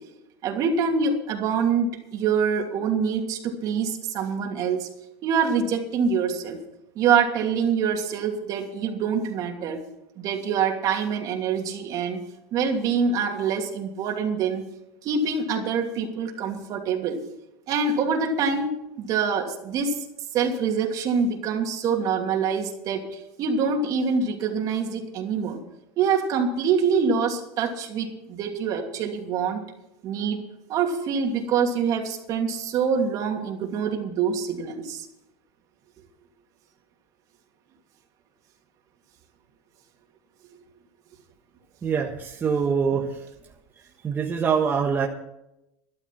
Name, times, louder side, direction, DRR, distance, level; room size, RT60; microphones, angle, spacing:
voice 1, 0.4-4.9 5.2-6.6 6.9-9.8 10.2-12.2 12.5-14.6 15.0-17.2 17.7-20.0 20.3-25.6 26.0-29.6 30.0-30.4 30.7-35.1, right 6 dB, 45° right, 3 dB, 2.8 m, -25 dB
voice 2, 41.8-43.2 44.0-45.1, right 6 dB, 25° right, 0 dB, 1.5 m, -24 dB
12.5 x 12.0 x 6.0 m, 0.87 s
supercardioid pair, 130°, 8 cm